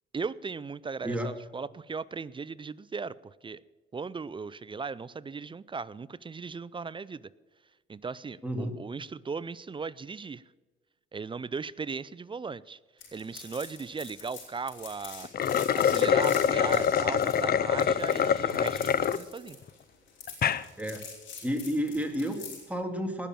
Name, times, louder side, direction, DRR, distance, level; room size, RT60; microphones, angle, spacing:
voice 1, 0.1-3.6 3.9-7.3 7.9-10.4 11.1-12.8 13.1-15.3 15.7-19.6, right 5 dB, 25° right, 19 dB, 0.5 m, -37 dB
voice 2, 1.0-1.3 8.4-8.8 20.8-21.1 21.4-23.3, equal, 5° right, 4 dB, 2.5 m, -31 dB
sound 1, 13.0-22.7, left 6 dB, 75° left, 5.9 m, -45 dB
sound 2, 15.2-19.2 19.7-19.8 20.3-20.6, left 8 dB, 50° left, 0.7 m, -25 dB
19.0 x 6.9 x 7.4 m, 1.3 s
cardioid pair, 90°, 20 cm